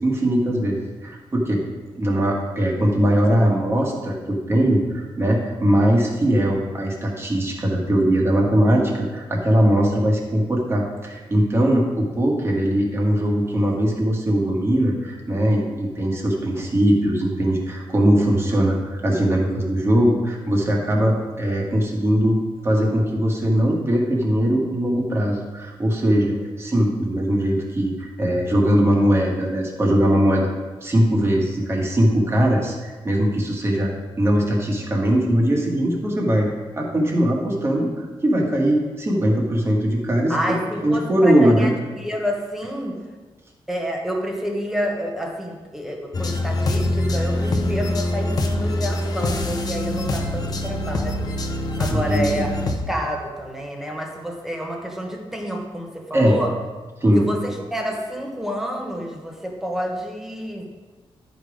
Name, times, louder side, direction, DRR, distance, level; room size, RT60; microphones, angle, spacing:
voice 1, 0.0-1.6 2.0-22.4 22.6-30.5 30.8-33.9 34.2-36.5 36.8-40.6 40.8-41.7 51.9-52.3 56.1-56.4 57.0-57.2, equal, 25° right, -1 dB, 1.5 m, -20 dB
voice 2, 40.3-41.7 42.0-43.0 43.7-51.3 51.8-52.6 52.9-56.5 57.1-60.7, equal, 5° right, 1 dB, 1.1 m, -28 dB
sound 1, 46.1-52.8, left 1 dB, 40° left, 0.8 m, -24 dB
11.0 x 5.2 x 5.0 m, 1.3 s
wide cardioid pair, 175°, 10 cm